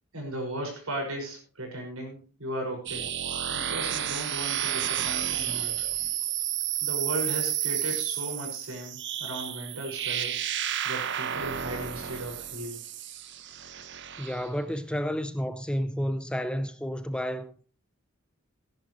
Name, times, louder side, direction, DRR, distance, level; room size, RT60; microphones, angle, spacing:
voice 1, 0.1-3.1 3.5-5.8 6.8-10.5 10.8-12.8, right 1 dB, 85° right, 5.6 m, -36 dB
sound 1, 2.9-14.5, right 10 dB, 55° right, 0.9 m, -31 dB
voice 2, 14.2-17.5, equal, 5° left, 0.6 m, -31 dB
16.5 x 11.0 x 3.1 m
head